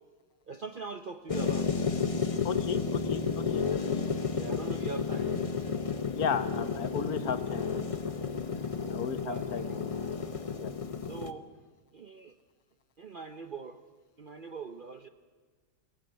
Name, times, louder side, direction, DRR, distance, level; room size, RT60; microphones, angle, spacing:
voice 1, 0.5-1.7 4.3-5.3 9.2-9.8 11.0-11.5 11.9-12.3 13.0-13.8 14.2-15.1, right 4 dB, 60° right, 8 dB, 0.5 m, -41 dB
sound 1, 1.3-11.3, left 5 dB, 40° left, 0.5 m, -32 dB
voice 2, 2.4-3.6 3.9-4.1 6.1-8.0 8.9-10.0 10.6-10.7, left 6 dB, 60° left, 11 dB, 1.5 m, -35 dB
19.0 x 17.5 x 9.2 m, 1.4 s
omnidirectional pair, 1.8 m